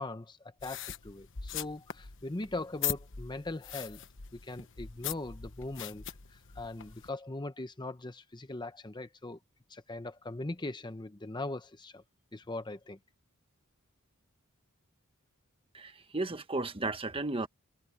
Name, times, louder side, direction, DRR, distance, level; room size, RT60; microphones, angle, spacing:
voice 1, 0.0-4.0 4.3-6.0 6.3-9.4 9.7-12.0 12.3-13.0, left 2 dB, 20° left, 0.8 m, -40 dB
sound 1, 0.6-7.1, left 10 dB, 60° left, 1.2 m, -41 dB
voice 2, 15.7-17.5, right 2 dB, 25° right, 1.3 m, -34 dB
head